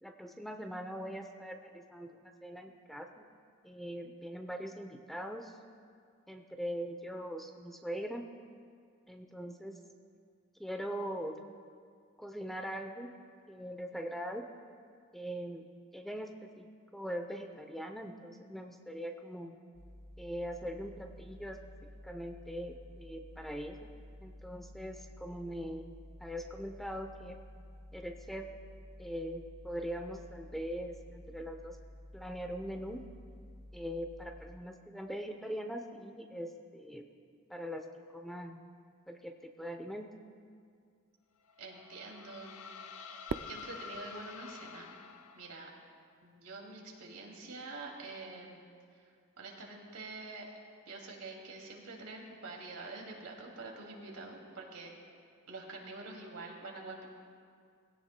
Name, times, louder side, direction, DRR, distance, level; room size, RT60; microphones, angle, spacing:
voice 1, 0.0-3.2 3.6-5.6 6.3-8.3 9.1-9.8 10.6-11.4 12.2-13.1 13.5-14.5 15.1-15.6 15.9-16.7 16.9-19.6 20.2-21.6 22.0-23.9 24.2-25.9 26.2-27.4 27.9-28.5 29.0-31.8 32.1-33.1 33.7-37.0 37.5-37.8 38.1-38.6 39.1-40.1, equal, ahead, 5 dB, 0.6 m, -41 dB
sound 1, 19.7-34.6, left 1 dB, 25° left, 1.0 m, -52 dB
sound 2, 41.4-45.8, left 6 dB, 85° left, 0.8 m, -49 dB
voice 2, 41.6-42.6 43.5-44.9 45.3-45.7 46.2-48.6 49.0-49.1 49.4-50.5 50.9-54.9 55.5-57.1, right 3 dB, 85° right, -1 dB, 2.5 m, -46 dB
Fireworks, 43.3-45.6, right 5 dB, 55° right, 0.3 m, -44 dB
21.0 x 16.5 x 2.2 m, 2.2 s
head